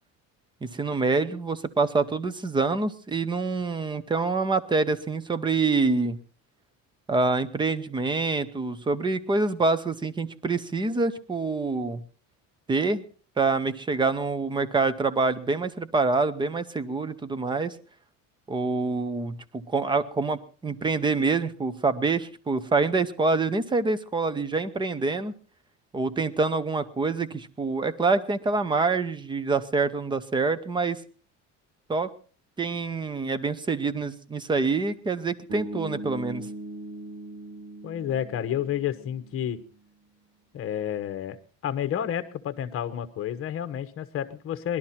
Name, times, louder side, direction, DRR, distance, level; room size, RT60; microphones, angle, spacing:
voice 1, 0.6-6.2 7.1-12.0 12.7-13.0 13.4-17.8 18.5-25.3 25.9-31.0 31.9-32.1 32.6-36.5, right 3 dB, 15° right, 15 dB, 0.7 m, -26 dB
Bass guitar, 35.5-39.6, right 1 dB, 75° right, 3.0 m, -39 dB
voice 2, 37.8-39.6 40.5-44.8, left 10 dB, 35° left, 10 dB, 1.1 m, -30 dB
20.0 x 12.0 x 4.3 m, 0.40 s
cardioid pair, 165°, 36 cm